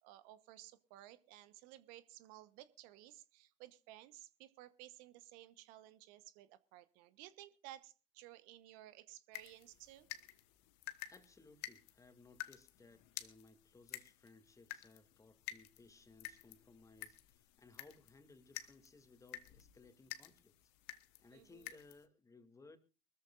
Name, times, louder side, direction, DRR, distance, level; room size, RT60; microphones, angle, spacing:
voice 1, 0.0-10.1 21.3-21.7, right 14 dB, 70° right, 14 dB, 1.1 m, -57 dB
sound 1, 9.3-22.1, left 15 dB, 70° left, 1.2 m, -52 dB
voice 2, 11.0-20.7 21.2-22.8, left 3 dB, 20° left, 9 dB, 2.4 m, -62 dB
24.0 x 14.0 x 2.5 m, 0.32 s
hypercardioid pair, 65°, 15 cm